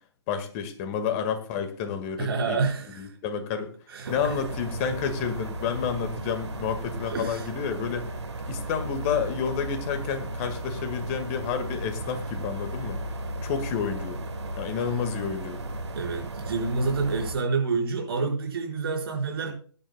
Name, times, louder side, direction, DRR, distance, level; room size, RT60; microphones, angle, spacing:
voice 1, 0.3-2.6 3.0-3.7 4.1-8.1 8.5-13.0 13.4-14.2 14.6-15.6, left 7 dB, 30° left, 8 dB, 1.7 m, -30 dB
voice 2, 2.2-3.1 3.9-4.3 7.1-7.5 15.9-19.5, right 4 dB, 60° right, 0 dB, 4.8 m, -28 dB
sound 1, 4.0-17.4, right 1 dB, 75° right, 1.5 m, -35 dB
21.5 x 10.0 x 2.3 m, 0.43 s
figure-of-eight pair, 125°, 14 cm